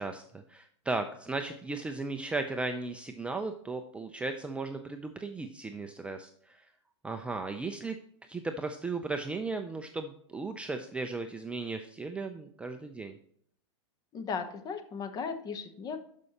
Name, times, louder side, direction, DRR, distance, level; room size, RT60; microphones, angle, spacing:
voice 1, 0.0-6.7 7.0-8.0 8.3-13.2, right 3 dB, 10° right, 6 dB, 0.4 m, -36 dB
voice 2, 14.1-16.0, left 5 dB, 25° left, 8 dB, 0.9 m, -36 dB
12.0 x 5.4 x 2.9 m, 0.65 s
hypercardioid pair, 135°, 15 cm